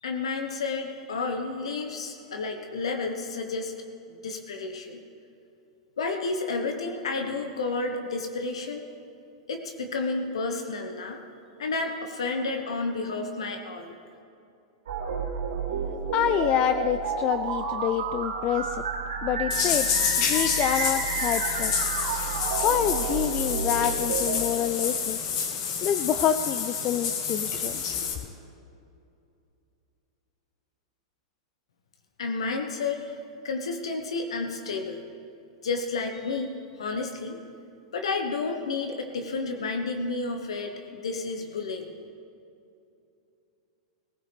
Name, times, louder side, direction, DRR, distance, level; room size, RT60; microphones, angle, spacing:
voice 1, 0.0-3.7 4.1-5.0 6.0-8.8 9.5-11.2 11.6-14.0 32.2-33.2 33.4-35.0 35.6-37.4 37.9-41.9, left 3 dB, 80° left, 4 dB, 1.2 m, -31 dB
sound 1, 14.9-24.4, right 5 dB, 80° right, 2.1 m, -31 dB
voice 2, 16.1-18.8 19.2-19.9 20.2-21.7 22.6-25.2 25.8-27.8, left 10 dB, 40° left, 10 dB, 0.4 m, -27 dB
sound 2, 19.5-28.1, left 6 dB, 60° left, 1.9 m, -28 dB
18.5 x 15.5 x 3.5 m, 2.7 s
hypercardioid pair, 110°, 3 cm